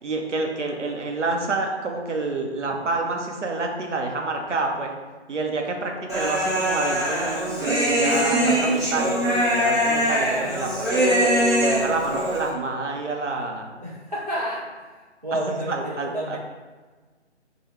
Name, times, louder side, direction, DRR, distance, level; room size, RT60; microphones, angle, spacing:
voice 1, 0.0-4.9 5.3-13.7 15.3-16.4, right 3 dB, 75° right, 1 dB, 0.8 m, -28 dB
Human voice, 6.1-12.5, equal, 15° right, 1.1 m, -22 dB
voice 2, 13.8-16.4, right 1 dB, 35° right, -6 dB, 0.4 m, -30 dB
4.8 x 2.3 x 3.1 m, 1.4 s
figure-of-eight pair, 155°, 36 cm